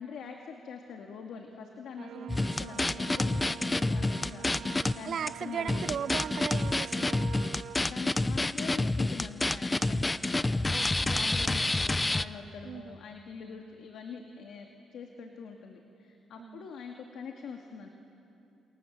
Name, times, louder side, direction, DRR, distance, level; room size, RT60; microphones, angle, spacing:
voice 1, 0.0-6.1 7.8-17.9, left 6 dB, 70° left, 3 dB, 2.2 m, -44 dB
sound 1, 2.0-7.8, right 11 dB, 75° right, 0.9 m, -46 dB
voice 2, 2.1-2.9 5.0-7.3 10.7-11.4 12.6-13.0 16.4-16.7, right 8 dB, 60° right, 18 dB, 0.6 m, -38 dB
sound 2, 2.3-4.9 5.3-5.4 5.7-12.2, left 2 dB, 15° left, 0.6 m, -28 dB
28.5 x 26.5 x 7.4 m, 2.8 s
cardioid pair, 90°, 0 cm